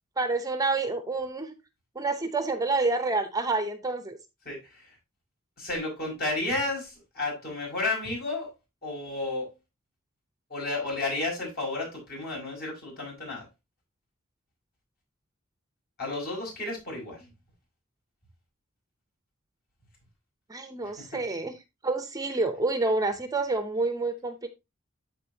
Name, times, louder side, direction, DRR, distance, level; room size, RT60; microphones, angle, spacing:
voice 1, 0.2-1.5 1.9-4.2 20.5-21.6 21.8-24.5, right 3 dB, 15° right, 0.7 m, -28 dB
voice 2, 4.5-4.9 5.6-8.5 8.8-9.5 10.5-13.5 16.0-17.2, left 2 dB, 50° left, 5.7 m, -32 dB
13.5 x 4.5 x 2.8 m
head